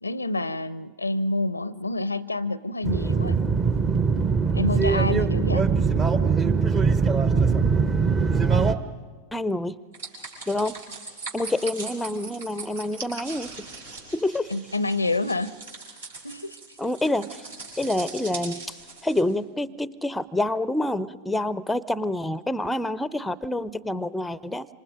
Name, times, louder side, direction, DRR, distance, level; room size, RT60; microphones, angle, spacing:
voice 1, 0.0-3.4 4.5-5.7 14.5-15.5 16.2-16.6, left 2 dB, 80° left, 19 dB, 0.6 m, -28 dB
sound 1, 2.8-8.7, right 5 dB, 25° right, 1.0 m, -21 dB
voice 2, 9.3-9.8 10.5-10.7 11.3-13.5 14.1-14.5 16.8-17.4 17.8-18.8 19.0-24.7, left 1 dB, 5° left, 18 dB, 0.6 m, -27 dB
sound 2, 9.9-19.2, right 3 dB, 70° right, 6.5 m, -40 dB
26.5 x 25.5 x 5.2 m, 1.4 s
figure-of-eight pair, 90°, 0 cm